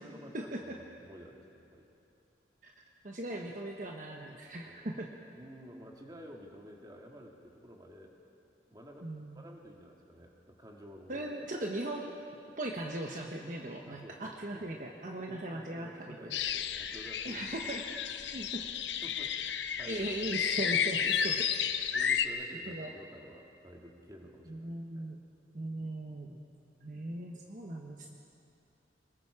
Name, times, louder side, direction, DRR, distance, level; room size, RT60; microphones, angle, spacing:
voice 1, 0.0-1.9 4.7-5.0 5.3-8.2 8.7-11.3 13.9-14.7 15.3-17.6 18.1-18.3 19.0-20.2 21.9-24.7 24.9-25.0, equal, 20° right, 0 dB, 2.0 m, -51 dB
voice 2, 3.0-5.1 9.0-9.4 11.1-12.2 12.6-16.3 17.2-18.0 18.3-18.7 19.9-21.5 22.7-22.9 24.5-25.2 25.5-26.4 26.8-28.2, right 1 dB, 45° right, 0 dB, 1.2 m, -39 dB
sound 1, 16.3-22.3, left 8 dB, 75° left, 0.8 m, -32 dB
26.5 x 20.0 x 4.9 m, 2.7 s
head